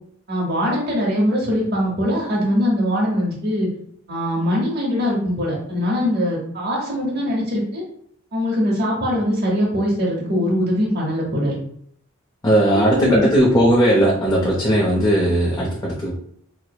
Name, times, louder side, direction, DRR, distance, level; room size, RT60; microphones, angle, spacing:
voice 1, 0.3-3.7 4.1-7.8 8.3-11.6 12.7-13.3, equal, 50° right, -3 dB, 0.8 m, -22 dB
voice 2, 12.4-16.1, right 1 dB, 15° left, -5 dB, 0.5 m, -17 dB
4.5 x 2.0 x 2.2 m, 0.67 s
head